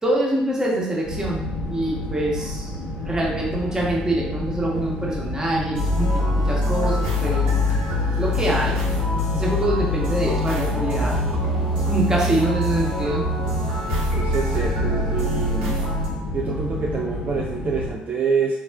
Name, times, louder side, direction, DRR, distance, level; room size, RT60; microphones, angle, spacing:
voice 1, 0.0-2.8 3.0-7.5 8.2-8.8 9.3-11.1 11.9-13.2, right 1 dB, 15° right, -4 dB, 1.1 m, -25 dB
sound 1, 1.0-17.9, left 1 dB, 55° left, 0.8 m, -30 dB
sound 2, 5.7-16.1, left 1 dB, 75° right, 0.8 m, -24 dB
voice 2, 14.1-15.7 16.3-18.6, right 5 dB, 40° right, -2 dB, 0.4 m, -26 dB
4.1 x 2.3 x 2.2 m, 0.90 s
figure-of-eight pair, 50°, 4 cm